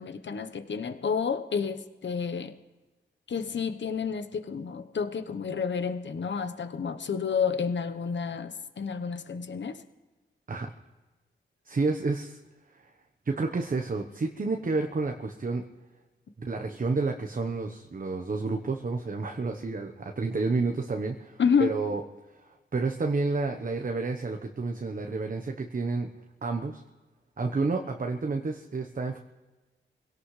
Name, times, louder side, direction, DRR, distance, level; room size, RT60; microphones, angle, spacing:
voice 1, 0.0-2.5 3.3-9.8 21.4-21.7, left 6 dB, 65° left, 9 dB, 1.1 m, -30 dB
voice 2, 11.7-12.4 13.2-15.7 16.4-22.0 22.7-26.1 26.4-26.8 27.4-29.2, right 3 dB, 45° right, 4 dB, 1.1 m, -30 dB
25.0 x 17.0 x 3.3 m, 1.2 s
cardioid pair, 60°, 20 cm